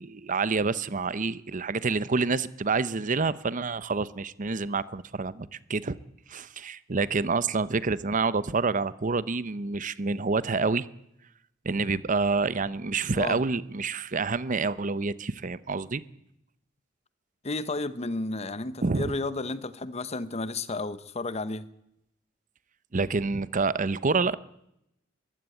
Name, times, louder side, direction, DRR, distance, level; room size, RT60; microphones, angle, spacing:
voice 1, 0.0-5.9 6.3-10.9 11.6-16.0 18.8-19.1 22.9-24.3, right 4 dB, 40° right, 0.7 m, -28 dB
voice 2, 17.4-21.7, left 2 dB, 35° left, 1.0 m, -32 dB
22.5 x 15.0 x 9.1 m
head